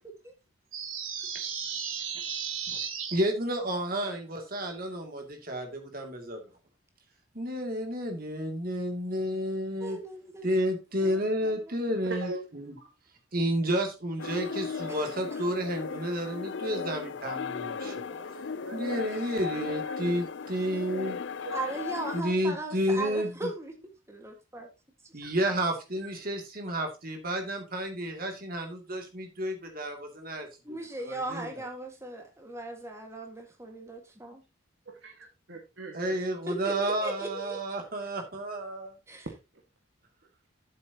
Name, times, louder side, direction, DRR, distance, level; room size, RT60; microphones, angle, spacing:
sound 1, 0.7-3.2, right 7 dB, 80° right, 2.2 m, -34 dB
voice 1, 3.1-6.4 7.3-10.0 10.4-12.7 13.3-18.1 18.7-21.2 22.1-23.3 25.1-30.8 31.0-31.5 35.9-38.9, equal, 45° right, 2.5 m, -31 dB
voice 2, 9.8-10.6 11.0-11.7 14.9-15.4 17.8-18.3 21.5-23.7 24.1-24.7 30.6-34.4 36.5-37.6 39.1-39.3, right 2 dB, 15° right, 1.7 m, -38 dB
voice 3, 12.0-12.4 12.8-12.9 18.3-19.1 19.4-19.5 19.8-20.2 21.4-21.6 25.2-25.3 26.0-26.1 34.8-36.2, right 3 dB, 60° right, 1.7 m, -42 dB
sound 2, 14.2-22.2, left 5 dB, 60° left, 0.5 m, -36 dB
11.0 x 7.9 x 2.9 m
head